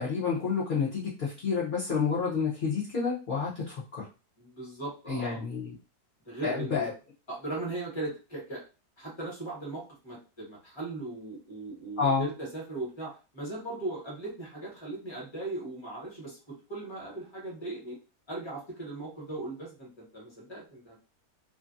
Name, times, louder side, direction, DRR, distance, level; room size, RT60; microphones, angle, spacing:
voice 1, 0.0-4.0 5.1-5.7 6.4-6.9 12.0-12.3, left 5 dB, 45° left, -7 dB, 0.7 m, -29 dB
voice 2, 4.4-5.4 6.2-6.9 7.3-8.6 9.0-18.0 18.3-21.0, right 2 dB, 20° left, -3 dB, 1.0 m, -38 dB
2.6 x 2.5 x 2.5 m, 0.33 s
omnidirectional pair, 1.6 m